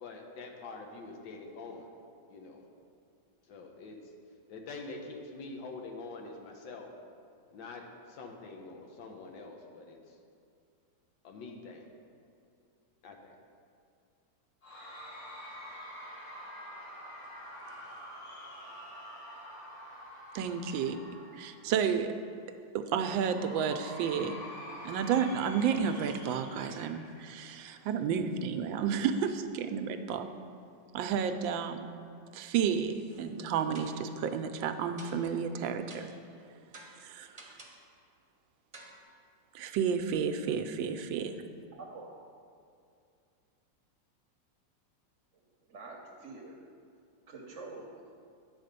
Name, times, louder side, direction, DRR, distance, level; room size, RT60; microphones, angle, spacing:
voice 1, 0.0-1.9 2.3-2.7 3.5-4.0 4.5-6.9 7.5-10.2 11.2-11.9 13.0-13.4, left 3 dB, 80° left, 2 dB, 1.7 m, -45 dB
Cheering / Crowd, 14.6-21.9 23.2-27.9, equal, 50° left, 2.3 m, -47 dB
voice 2, 20.3-21.0 21.4-22.1 22.7-24.4 24.8-30.3 30.9-31.9 32.3-36.2 37.0-37.4 39.5-41.4, right 7 dB, 90° right, 8 dB, 1.3 m, -31 dB
sound 1, 33.1-33.4 33.7-34.1 35.0-35.4 35.9-36.3 36.7-37.9 38.7-39.0, right 2 dB, 30° right, 0.8 m, -52 dB
voice 3, 41.7-42.1 45.7-46.6 47.3-48.1, right 3 dB, 50° right, 1 dB, 1.0 m, -46 dB
10.0 x 4.4 x 6.7 m, 2.4 s
omnidirectional pair, 2.0 m